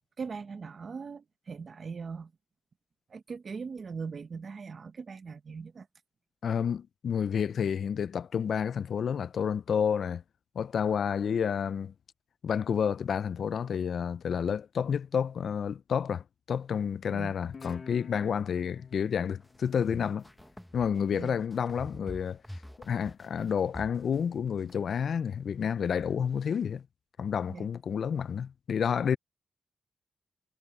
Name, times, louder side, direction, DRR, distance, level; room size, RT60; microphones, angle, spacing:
voice 1, 0.2-2.3 3.1-5.9 17.1-17.3 21.1-21.4 27.5-27.7, right 5 dB, 55° right, 1.1 m, -40 dB
voice 2, 6.4-10.2 10.6-11.9 12.4-20.3 20.7-22.4 22.8-26.8 27.2-29.2, left 7 dB, 75° left, 0.4 m, -30 dB
Guitar, 17.5-20.8, left 5 dB, 45° left, 0.7 m, -50 dB
sound 1, 19.4-24.8, equal, 5° left, 1.0 m, -46 dB
wide cardioid pair, 115°, 0 cm